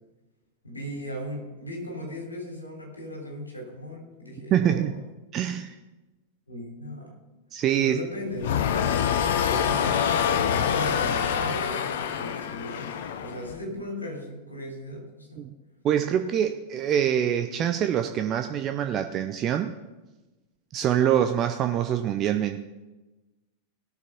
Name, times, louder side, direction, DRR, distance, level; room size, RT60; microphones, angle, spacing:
voice 1, 0.6-4.9 6.5-7.2 7.8-10.0 10.4-15.4, equal, 80° left, 0 dB, 3.3 m, -37 dB
voice 2, 4.5-4.9 5.3-5.7 7.5-8.0 15.4-15.5 15.8-19.7 20.7-22.6, right 10 dB, 30° right, 7 dB, 0.6 m, -25 dB
sound 1, 8.4-13.6, left 8 dB, 55° left, 0.7 m, -26 dB
17.5 x 6.7 x 5.2 m, 1.1 s
figure-of-eight pair, 90°, 0 cm